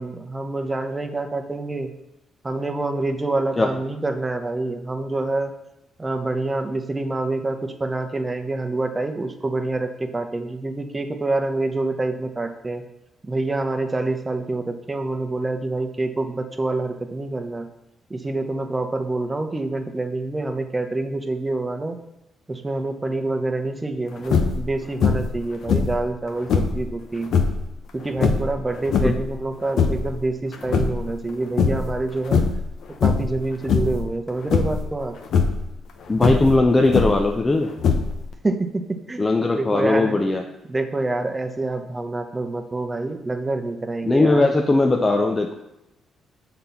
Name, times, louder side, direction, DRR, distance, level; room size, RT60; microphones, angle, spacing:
voice 1, 0.0-1.9 2.4-5.5 6.0-12.8 13.2-17.7 18.1-22.0 22.5-27.3 27.9-32.4 33.0-35.1 38.4-39.3 39.6-40.2 40.7-44.6, right 2 dB, 20° right, 6 dB, 0.9 m, -26 dB
sound 1, 24.2-24.7 25.0-25.4 25.7-26.8 27.2-27.6 28.2-29.3 29.6-30.1 30.5-31.3 31.6-31.9 32.2-32.7 33.0-33.4 33.7-34.0 34.5-34.9 35.2-35.6 36.2-37.3 37.8-38.3, left 5 dB, 70° left, 0.9 m, -21 dB
voice 2, 36.1-37.7 39.2-40.4 44.0-45.5, left 2 dB, 25° left, 3 dB, 0.6 m, -19 dB
6.7 x 4.0 x 5.7 m, 0.91 s
cardioid pair, 90°, 0 cm